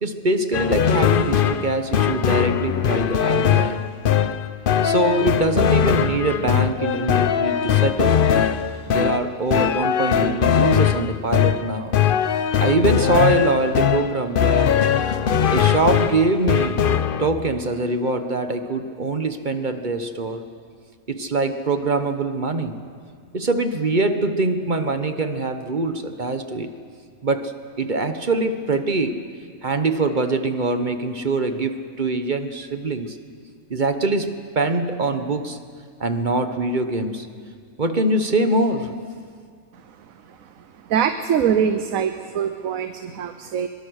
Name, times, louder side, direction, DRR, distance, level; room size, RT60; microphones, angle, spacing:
voice 1, 0.0-3.7 4.8-8.1 8.9-11.9 12.6-14.7 15.5-16.8 17.2-20.4 21.1-22.8 23.3-26.7 27.2-27.5 27.8-29.2 29.6-33.2 33.7-35.6 36.0-37.3 37.8-38.9, right 2 dB, 35° right, 8 dB, 1.1 m, -23 dB
sound 1, 0.5-17.3, left 8 dB, 50° left, 0.7 m, -20 dB
voice 2, 40.8-43.7, right 8 dB, 75° right, 9 dB, 1.2 m, -23 dB
23.0 x 22.5 x 6.4 m, 2.1 s
omnidirectional pair, 1.5 m